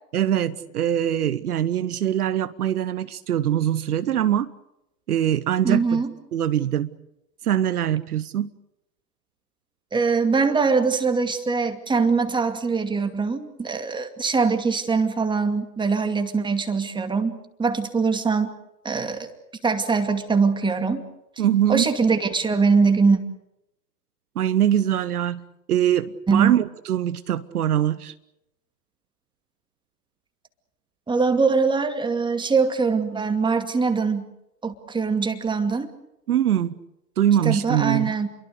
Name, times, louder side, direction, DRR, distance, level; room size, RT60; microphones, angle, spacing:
voice 1, 0.1-4.5 5.1-6.0 6.3-6.9 7.4-8.5 21.4-21.9 24.4-28.1 36.3-36.8 37.2-38.1, right 10 dB, 65° right, 14 dB, 1.1 m, -23 dB
voice 2, 5.6-6.1 9.9-18.5 18.8-19.3 19.6-21.0 21.7-23.2 26.3-26.6 31.1-34.3 34.6-35.9 37.4-38.3, right 4 dB, 10° right, 7 dB, 2.4 m, -22 dB
29.5 x 23.0 x 6.7 m, 0.86 s
figure-of-eight pair, 100°, 49 cm